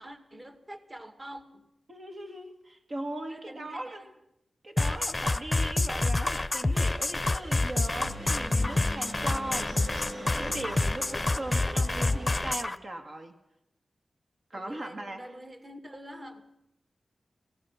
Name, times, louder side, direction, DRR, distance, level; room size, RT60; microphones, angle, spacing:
voice 1, 0.0-1.7 3.3-4.1 14.5-16.4, equal, 30° right, 2.2 m, -46 dB
voice 2, 1.9-4.0 4.6-9.9 10.2-13.3 14.5-15.2, right 1 dB, 55° right, 2.0 m, -39 dB
sound 1, 4.8-12.8, left 2 dB, 30° left, 0.7 m, -27 dB
sound 2, 6.7-12.5, right 1 dB, 80° right, 6.1 m, -42 dB
27.0 x 16.5 x 5.9 m
cardioid pair, 65°, 0 cm